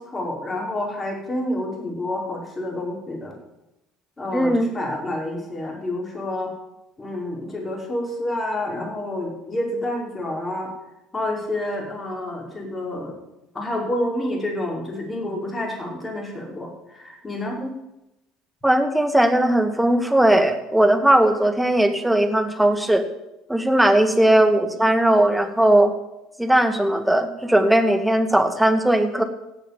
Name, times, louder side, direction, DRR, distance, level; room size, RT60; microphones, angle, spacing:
voice 1, 0.0-3.3 4.2-6.5 7.0-10.7 11.1-13.2 13.5-17.6 24.3-24.5, left 1 dB, 25° left, 0 dB, 5.6 m, -29 dB
voice 2, 4.3-4.7 17.6-17.7 18.6-23.0 23.5-25.9 26.4-29.2, right 1 dB, 5° right, 8 dB, 1.8 m, -18 dB
16.5 x 7.5 x 7.1 m, 0.91 s
hypercardioid pair, 70°, 0 cm